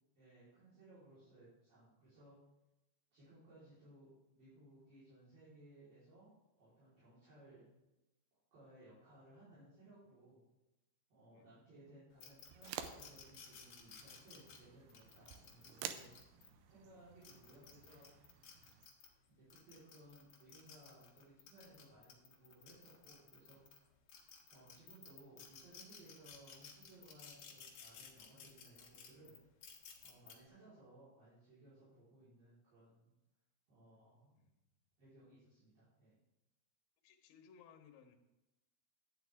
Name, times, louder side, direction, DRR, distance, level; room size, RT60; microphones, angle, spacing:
voice 1, 0.2-2.4 3.1-6.3 6.6-7.7 8.5-10.4 11.1-16.1 16.4-18.1 19.3-23.6 24.5-29.4 30.0-33.1 33.7-34.4 35.0-36.2, right 1 dB, 50° right, -11 dB, 5.5 m, -62 dB
sound 1, 12.2-16.5 17.1-19.1 19.5-23.8 24.1-30.3, left 7 dB, 60° left, 2.5 m, -57 dB
sound 2, 12.5-18.9, right 9 dB, 80° right, 2.6 m, -51 dB
voice 2, 37.0-38.2, left 7 dB, 90° left, 4 dB, 3.3 m, -63 dB
12.5 x 9.4 x 3.5 m, 0.96 s
omnidirectional pair, 5.1 m